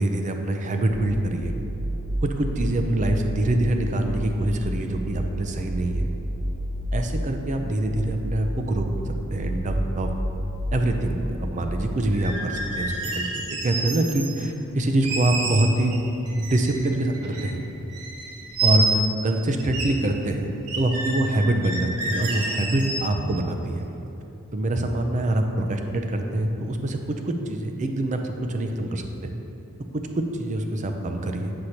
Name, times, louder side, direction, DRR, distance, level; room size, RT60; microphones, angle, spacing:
voice 1, 0.0-1.5 2.2-6.1 6.9-10.1 10.7-15.9 16.4-17.6 18.6-20.5 20.8-23.8 24.5-29.3 29.9-31.5, right 1 dB, 35° right, 4 dB, 0.5 m, -25 dB
sound 1, 0.9-12.0, equal, 65° right, 1.3 m, -30 dB
sound 2, 12.1-14.4 15.0-16.0 16.2-17.6 17.9-19.3 19.6-19.9 20.2-20.3 20.7-23.4, right 2 dB, 90° right, 1.0 m, -29 dB
7.9 x 6.4 x 2.9 m, 2.9 s
head